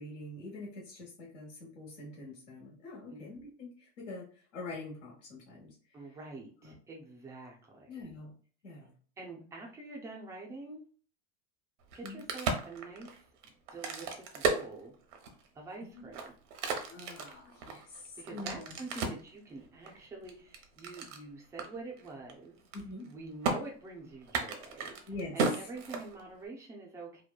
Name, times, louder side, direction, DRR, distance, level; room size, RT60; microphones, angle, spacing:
voice 1, 0.0-4.3 4.5-5.7 6.6-6.7 7.9-8.3 8.6-8.9 12.0-12.2 15.8-16.0 16.9-19.0 22.7-23.0 25.1-25.7, left 2 dB, 85° left, -4 dB, 1.2 m, -45 dB
voice 2, 5.9-8.0 9.2-10.8 11.9-13.1 13.7-14.9 15.5-16.2 18.2-22.6 23.0-25.0 25.3-27.2, right 3 dB, 10° right, -1 dB, 0.3 m, -46 dB
Crack, 11.8-15.5 16.0-19.3 19.9-21.2 21.6-21.7 22.0-22.3 22.6-23.1 23.4-23.6 24.2-26.5, right 4 dB, 75° right, 0.7 m, -34 dB
2.9 x 2.1 x 2.2 m, 0.42 s
supercardioid pair, 140°, 36 cm